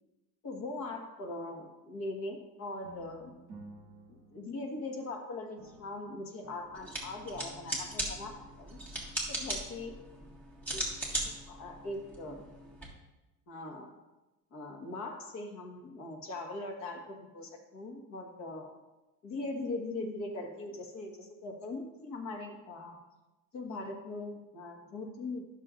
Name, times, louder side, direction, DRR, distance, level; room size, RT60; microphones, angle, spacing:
voice 1, 0.4-3.3 4.1-8.8 9.3-10.3 10.7-10.9 11.2-12.5 13.5-14.0 14.5-18.8 19.2-23.0 23.5-25.4, left 2 dB, 50° left, 2 dB, 1.5 m, -41 dB
sound 1, 2.8-5.2 5.6-7.8, right 2 dB, 45° right, 2.4 m, -54 dB
sound 2, 6.7-12.8, right 1 dB, 5° left, 1.6 m, -39 dB
12.5 x 6.5 x 2.5 m, 1.0 s
cardioid pair, 170°, 36 cm